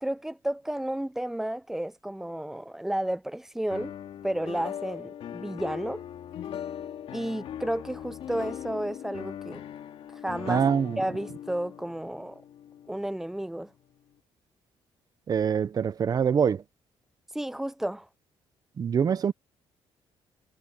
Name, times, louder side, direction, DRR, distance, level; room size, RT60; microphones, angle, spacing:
voice 1, 0.0-3.9 4.2-6.0 7.1-9.6 10.1-10.6 11.0-12.4 12.9-13.7 17.3-18.1, right 1 dB, 5° right, 0.4 m, -32 dB
sound 1, 3.7-13.6, left 10 dB, 65° left, 2.4 m, -40 dB
voice 2, 10.5-11.0 15.3-16.6 18.8-19.3, right 7 dB, 40° right, 0.8 m, -24 dB
cardioid pair, 130°, 10 cm